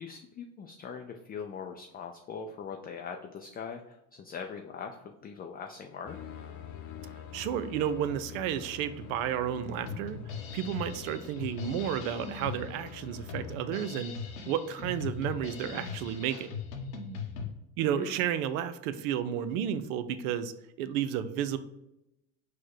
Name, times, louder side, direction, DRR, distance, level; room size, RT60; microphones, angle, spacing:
voice 1, 0.0-6.2 17.9-18.2, left 6 dB, 25° left, 3 dB, 0.4 m, -41 dB
sound 1, 6.1-13.5, left 9 dB, 45° left, 0.7 m, -46 dB
voice 2, 7.3-10.2 10.5-14.1 14.5-16.6 17.8-20.5 20.8-21.6, right 9 dB, 80° right, 12 dB, 0.5 m, -32 dB
Drum kit, 9.9-17.5, left 5 dB, 85° left, 0.8 m, -40 dB
4.3 x 2.1 x 4.6 m, 0.88 s
hypercardioid pair, 75°, 40 cm